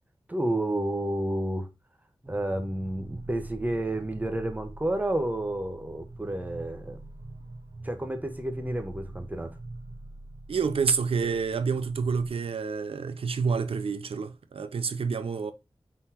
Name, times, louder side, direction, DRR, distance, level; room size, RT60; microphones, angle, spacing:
voice 1, 0.3-1.7 2.2-7.0 7.8-9.5, right 1 dB, 15° right, 1.0 m, -30 dB
sound 1, 2.3-12.3, right 2 dB, 60° right, 1.3 m, -44 dB
voice 2, 10.5-15.5, right 5 dB, 90° right, 0.5 m, -28 dB
4.1 x 4.0 x 2.7 m
wide cardioid pair, 55°, 9 cm